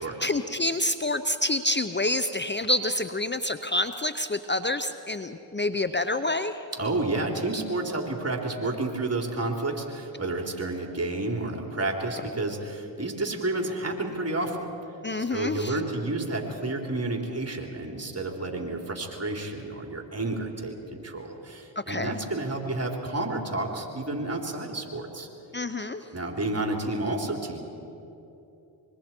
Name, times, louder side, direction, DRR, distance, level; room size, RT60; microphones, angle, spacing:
voice 1, 0.2-6.6 15.0-15.7 21.9-22.1 25.5-26.0, left 2 dB, 20° left, 11 dB, 0.8 m, -27 dB
voice 2, 6.7-14.6 15.3-25.3 26.1-27.6, right 2 dB, 30° right, 1 dB, 3.6 m, -30 dB
25.0 x 23.0 x 4.5 m, 2.9 s
supercardioid pair, 50°, 49 cm